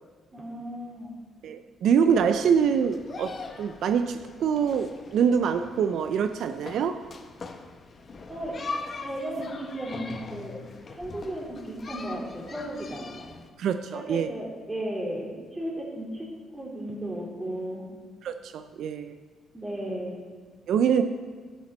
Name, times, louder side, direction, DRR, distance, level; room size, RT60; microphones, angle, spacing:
voice 1, 0.3-1.1 8.3-8.6 9.0-10.6 10.9-13.1 13.9-16.3 16.5-17.9 19.5-20.2, right 1 dB, 15° right, -4 dB, 3.0 m, -35 dB
voice 2, 1.4-7.0 13.6-14.3 18.2-19.2 20.7-21.0, right 7 dB, 75° right, 9 dB, 0.4 m, -25 dB
sound 1, 2.1-13.5, left 3 dB, 40° left, 0.9 m, -41 dB
12.0 x 6.9 x 4.3 m, 1.5 s
cardioid pair, 90°, 0 cm